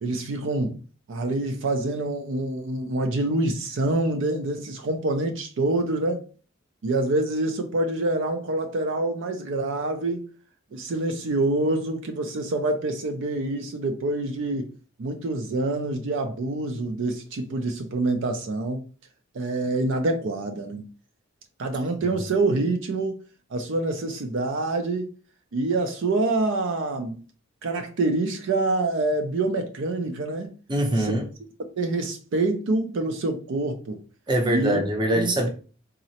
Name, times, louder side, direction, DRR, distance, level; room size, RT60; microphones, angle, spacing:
voice 1, 0.0-0.8 1.1-6.2 6.8-10.2 10.7-14.7 15.0-18.8 19.3-20.9 21.6-23.2 23.5-25.1 25.5-27.2 27.6-30.5 30.9-31.1 31.8-34.0 34.4-34.8 35.2-35.4, right 2 dB, 65° right, 0.4 m, -26 dB
voice 2, 30.7-31.2 34.3-35.5, right 1 dB, 25° right, 0.6 m, -23 dB
3.7 x 2.0 x 2.7 m
head